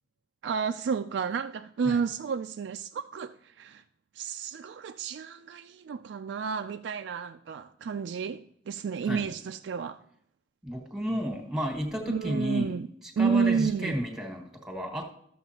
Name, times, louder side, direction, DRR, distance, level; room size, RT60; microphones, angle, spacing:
voice 1, 0.4-3.8 4.1-10.0 12.1-12.9 13.2-13.9, right 6 dB, 90° right, 0.3 m, -31 dB
voice 2, 10.6-12.7 13.2-15.1, equal, 5° right, 1.4 m, -32 dB
13.0 x 7.0 x 2.9 m
head